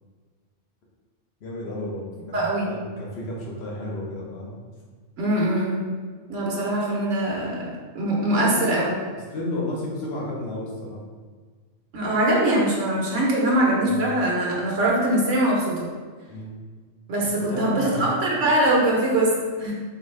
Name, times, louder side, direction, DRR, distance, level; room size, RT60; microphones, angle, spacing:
voice 1, 1.4-4.6 8.3-8.8 9.3-11.0 13.9-14.1 16.3-16.6 17.2-18.1, left 1 dB, 60° left, -3 dB, 1.1 m, -32 dB
voice 2, 2.3-2.7 5.2-5.8 6.3-8.8 11.9-15.9 17.1-19.7, right 1 dB, 80° right, -3 dB, 1.2 m, -22 dB
3.8 x 3.6 x 3.3 m, 1.5 s
omnidirectional pair, 1.3 m